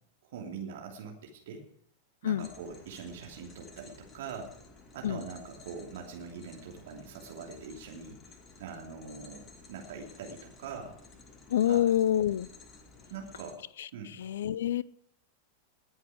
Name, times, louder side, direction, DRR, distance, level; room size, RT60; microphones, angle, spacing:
voice 1, 0.2-1.6 2.2-4.6 4.9-8.2 8.6-11.0 11.6-11.9 13.1-13.6 13.9-14.3, right 5 dB, 55° right, 1 dB, 2.8 m, -43 dB
sound 1, 2.4-13.5, left 3 dB, 25° left, 2.2 m, -54 dB
voice 2, 11.5-12.5 13.8-13.9 14.2-14.8, left 11 dB, 60° left, 22 dB, 0.5 m, -27 dB
20.5 x 8.3 x 4.9 m, 0.70 s
figure-of-eight pair, 90°, 0 cm